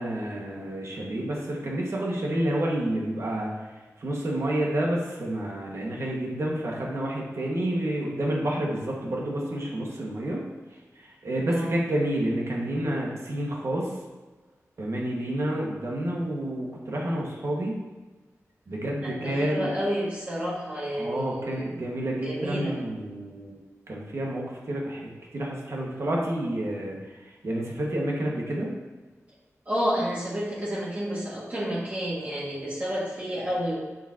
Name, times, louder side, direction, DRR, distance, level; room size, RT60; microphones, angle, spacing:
voice 1, 0.0-3.5 4.0-10.4 11.0-13.9 14.8-17.8 18.7-19.7 21.0-23.5 23.9-28.7, right 1 dB, 60° right, -3 dB, 1.8 m, -29 dB
voice 2, 11.4-11.8 19.0-21.8 22.2-22.8 29.7-33.7, equal, 30° right, -8 dB, 2.1 m, -30 dB
7.2 x 7.1 x 2.9 m, 1.3 s
wide cardioid pair, 120°, 5 cm